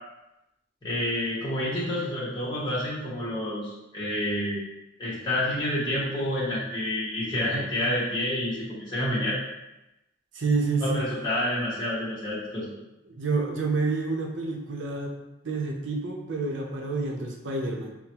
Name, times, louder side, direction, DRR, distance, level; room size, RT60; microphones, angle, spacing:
voice 1, 0.8-4.6 5.0-9.4 10.8-12.7, left 1 dB, 25° left, -9 dB, 1.0 m, -28 dB
voice 2, 10.3-11.1 13.1-15.2 15.4-17.9, right 3 dB, 80° right, 0 dB, 0.7 m, -28 dB
5.3 x 2.2 x 3.0 m, 0.96 s
head